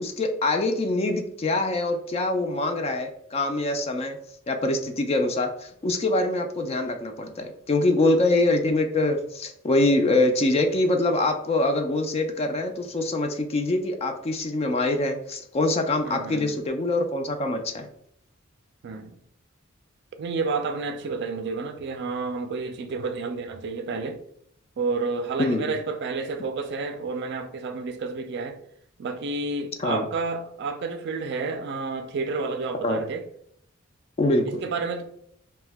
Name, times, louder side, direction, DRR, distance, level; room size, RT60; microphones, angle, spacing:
voice 1, 0.0-4.2 4.5-17.9 25.4-25.7 29.8-30.0 32.8-33.0 34.2-34.6, left 2 dB, 30° left, 0.3 m, -24 dB
voice 2, 16.0-16.6 18.8-19.2 20.2-24.2 24.8-28.6 29.0-33.2 34.4-35.0, right 4 dB, 55° right, 0.4 m, -30 dB
2.7 x 2.2 x 3.3 m
head